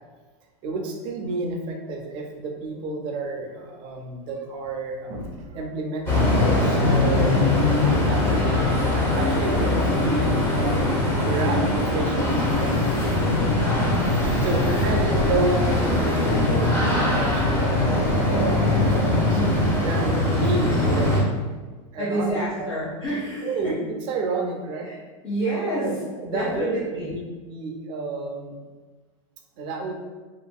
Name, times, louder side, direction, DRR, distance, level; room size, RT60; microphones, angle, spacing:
voice 1, 0.6-7.4 7.6-8.5 8.9-10.8 11.2-12.7 14.4-19.4 19.8-21.1 21.9-22.7 23.4-24.9 25.8-28.6 29.6-29.9, right 3 dB, 30° right, 2 dB, 0.4 m, -30 dB
sound 1, 6.1-21.2, left 2 dB, 15° left, 0.6 m, -21 dB
sound 2, 7.2-15.8, left 2 dB, 50° left, 0.8 m, -37 dB
voice 2, 12.8-13.8 14.4-14.9 19.1-19.5 22.0-23.8 24.8-24.9 25.2-25.9 26.3-27.1, right 1 dB, 80° left, -9 dB, 0.9 m, -29 dB
2.9 x 2.5 x 2.3 m, 1.4 s
supercardioid pair, 160°, 17 cm